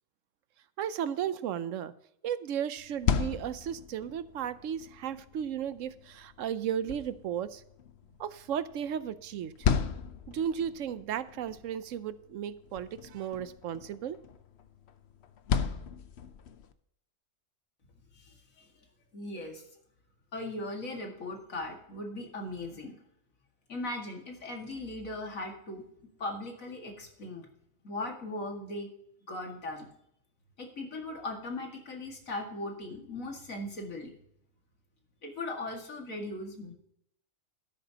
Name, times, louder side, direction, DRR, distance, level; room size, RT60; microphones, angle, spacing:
voice 1, 0.8-1.9 2.2-7.6 8.2-9.7 10.3-14.2, right 9 dB, 75° right, 15 dB, 1.0 m, -35 dB
sound 1, 2.8-16.7, left 7 dB, 60° left, 0.9 m, -36 dB
voice 2, 18.1-18.7 19.1-19.6 20.3-23.0 23.7-25.8 26.2-27.5 27.8-28.9 29.3-29.9 30.6-34.1 35.2-36.7, left 2 dB, 80° left, 2 dB, 2.5 m, -38 dB
12.5 x 11.0 x 2.9 m, 0.73 s
omnidirectional pair, 1.4 m